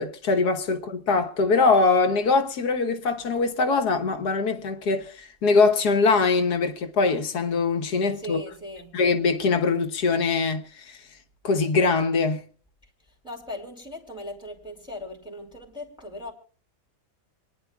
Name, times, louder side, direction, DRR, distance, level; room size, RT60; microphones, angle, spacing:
voice 1, 0.0-8.4 8.9-11.0 11.4-12.4, left 4 dB, 85° left, 1.8 m, -22 dB
voice 2, 8.2-9.0 12.8-16.3, left 1 dB, 5° right, 2.9 m, -39 dB
27.0 x 10.0 x 2.3 m
omnidirectional pair, 1.6 m